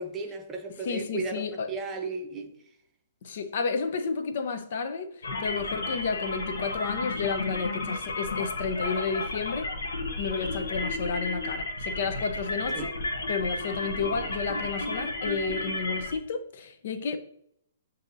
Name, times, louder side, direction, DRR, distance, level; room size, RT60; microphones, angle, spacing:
voice 1, 0.0-2.5 12.7-12.9, right 3 dB, 15° right, 0.7 m, -34 dB
voice 2, 0.7-1.7 3.2-9.7 10.2-12.9 13.3-17.2, left 5 dB, 55° left, 0.5 m, -31 dB
sound 1, 5.2-16.2, left 2 dB, 85° left, 0.8 m, -33 dB
7.4 x 2.7 x 2.6 m
hypercardioid pair, 150°, 0 cm